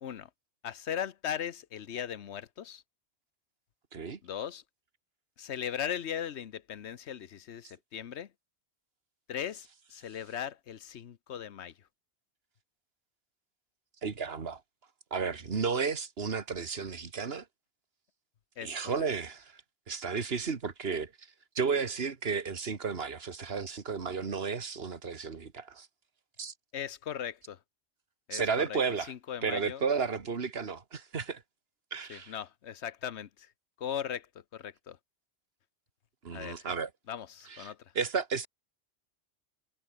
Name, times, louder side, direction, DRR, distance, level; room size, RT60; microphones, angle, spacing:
voice 1, 0.6-2.8 4.2-4.6 5.4-8.3 9.3-11.7 18.6-18.8 26.7-27.6 28.3-28.8 29.1-29.8 32.1-33.5 33.8-34.3 34.5-35.0 36.3-36.7 37.1-37.8, left 9 dB, 65° left, 1.2 m, -38 dB
voice 2, 14.0-14.6 15.1-17.5 18.6-19.6 19.9-21.3 21.6-25.9 26.4-26.5 28.3-29.1 29.4-31.4 31.9-32.3 36.2-36.9 37.5-38.5, right 5 dB, 55° right, 1.9 m, -33 dB
omnidirectional pair, 1.3 m